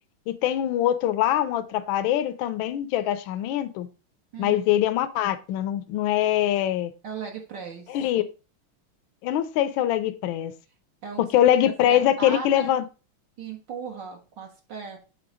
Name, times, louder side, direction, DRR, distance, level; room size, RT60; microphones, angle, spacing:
voice 1, 0.3-3.9 4.4-6.9 7.9-8.2 9.2-10.5 11.2-12.8, left 11 dB, 75° left, 1.3 m, -23 dB
voice 2, 4.3-4.7 7.0-8.0 11.0-11.2 11.9-12.7 13.4-15.0, right 5 dB, 60° right, 1.8 m, -37 dB
7.8 x 3.2 x 4.9 m
omnidirectional pair, 2.3 m